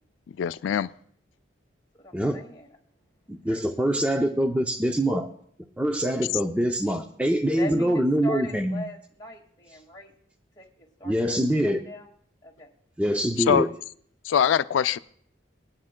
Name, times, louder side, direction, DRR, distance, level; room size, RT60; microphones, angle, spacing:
voice 1, 0.4-0.9 13.5-13.7 14.2-15.0, left 8 dB, 80° left, 0.3 m, -22 dB
voice 2, 1.9-2.8 3.5-3.7 7.6-10.1 10.6-12.1 12.4-12.7, left 1 dB, 20° left, 1.9 m, -40 dB
voice 3, 3.3-5.3 5.8-8.8 11.0-11.8 13.0-13.7, equal, 5° right, 0.5 m, -24 dB
20.5 x 9.8 x 2.2 m
head